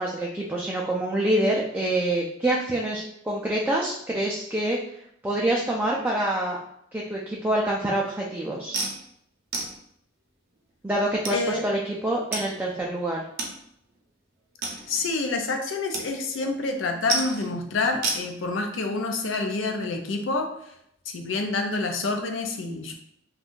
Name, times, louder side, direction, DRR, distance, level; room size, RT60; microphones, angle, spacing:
voice 1, 0.0-4.8 5.2-6.6 6.9-8.8 10.8-13.3, right 1 dB, 10° right, -3 dB, 0.3 m, -26 dB
sound 1, 8.7-9.0 9.5-9.7 10.6-10.7 11.2-11.4 12.3-12.4 12.7-12.8 13.4-13.5 13.9-14.0 14.6-15.1 15.9-16.1 16.3-16.7 17.1-17.5 18.0-18.2, right 3 dB, 60° right, 0.6 m, -29 dB
voice 2, 11.3-11.6 14.6-20.5 21.1-22.9, left 3 dB, 80° left, 4 dB, 0.5 m, -28 dB
2.5 x 2.3 x 3.6 m, 0.73 s
head